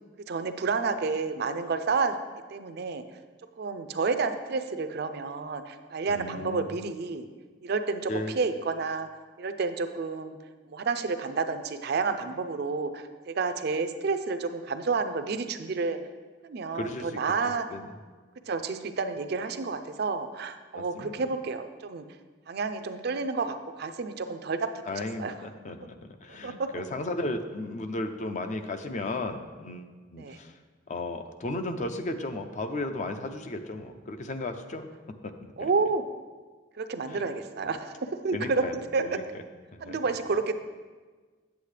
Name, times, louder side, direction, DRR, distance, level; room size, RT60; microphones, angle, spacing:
voice 1, 0.3-2.1 2.5-3.0 3.6-7.3 7.6-8.1 8.4-9.1 9.4-10.4 10.7-16.0 16.4-17.7 18.5-22.0 22.5-24.7 25.2-25.3 26.4-26.7 30.2-30.4 35.6-36.0 36.8-38.6 38.9-39.0 39.8-40.5, right 4 dB, 55° right, 8 dB, 0.5 m, -30 dB
voice 2, 6.1-6.7 8.1-8.4 16.7-17.2 17.7-17.9 20.7-21.2 24.9-30.5 30.9-34.9 35.2-35.7 37.1-37.2 37.6-37.7 38.3-39.2 39.7-40.0, left 2 dB, 40° left, 8 dB, 0.5 m, -35 dB
8.3 x 7.9 x 3.3 m, 1.4 s
head